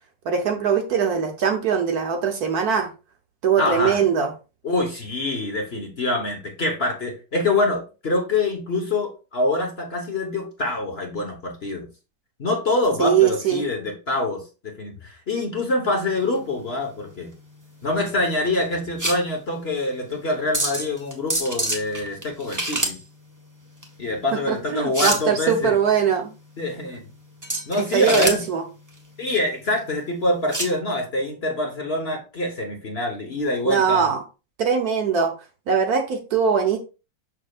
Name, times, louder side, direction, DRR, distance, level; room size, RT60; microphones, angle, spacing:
voice 1, 0.2-2.9 3.4-4.3 13.0-13.6 24.3-26.3 27.8-28.6 33.6-34.2 34.6-35.3 35.7-36.8, right 7 dB, 60° right, 4 dB, 1.3 m, -21 dB
voice 2, 3.6-4.0 4.6-11.9 12.4-17.3 17.8-23.0 24.0-25.7 26.6-27.0 27.7-28.4 29.2-34.1, left 2 dB, 35° left, 2 dB, 1.3 m, -25 dB
sound 1, 16.1-30.8, right 1 dB, 10° right, 1.1 m, -30 dB
6.5 x 6.4 x 2.4 m, 0.31 s
omnidirectional pair, 2.0 m